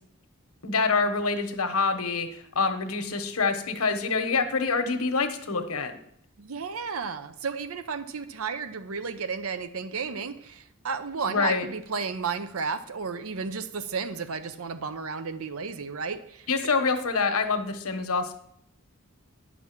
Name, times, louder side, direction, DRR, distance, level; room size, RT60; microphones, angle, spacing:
voice 1, 0.6-2.3 2.5-5.9 11.3-11.7 16.5-18.3, left 4 dB, 80° left, 6 dB, 1.2 m, -26 dB
voice 2, 6.4-16.5, right 5 dB, 75° right, 11 dB, 0.7 m, -33 dB
10.5 x 6.2 x 6.0 m, 0.72 s
head